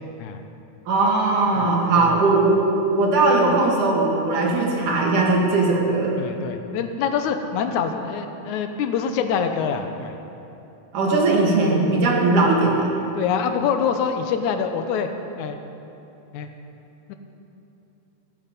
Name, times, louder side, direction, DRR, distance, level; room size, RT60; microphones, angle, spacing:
voice 1, 0.9-2.6 2.9-6.2 10.9-13.0, right 3 dB, 85° right, -2 dB, 3.5 m, -19 dB
voice 2, 6.2-10.2 13.2-15.1 15.4-15.6 16.3-16.5 17.1-17.2, left 7 dB, 80° left, 7 dB, 2.2 m, -25 dB
19.0 x 9.1 x 5.4 m, 2.9 s
omnidirectional pair, 3.5 m